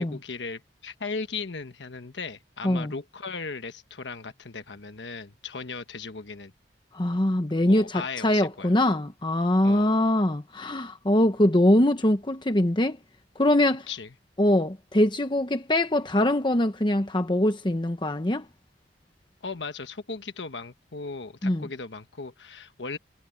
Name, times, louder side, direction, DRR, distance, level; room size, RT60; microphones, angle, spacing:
voice 1, 0.0-6.5 7.7-8.7 9.6-9.9 13.9-14.1 19.4-23.0, left 4 dB, 85° left, 1.2 m, -37 dB
voice 2, 6.9-13.0 13.4-13.9 14.4-18.5 21.4-21.7, left 1 dB, 25° left, 1.0 m, -23 dB
head